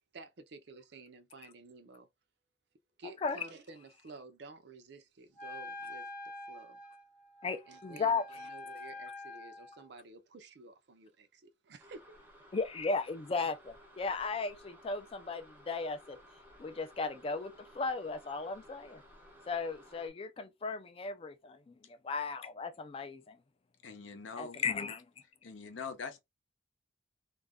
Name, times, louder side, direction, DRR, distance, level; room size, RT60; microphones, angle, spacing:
voice 1, 0.1-2.1 3.0-6.1 6.5-6.8 7.7-12.2, right 3 dB, 60° right, 0.5 m, -52 dB
Wind instrument woodwind instrument, 5.4-9.9, left 2 dB, 45° left, 0.8 m, -46 dB
voice 2, 7.4-8.4 12.5-16.2 16.6-19.0 19.5-23.4 24.4-25.1, left 4 dB, 30° left, 0.3 m, -36 dB
sound 1, 11.8-20.1, equal, 10° right, 0.6 m, -57 dB
voice 3, 23.8-24.6 25.4-26.2, left 5 dB, 80° left, 0.7 m, -43 dB
2.4 x 2.1 x 3.4 m
head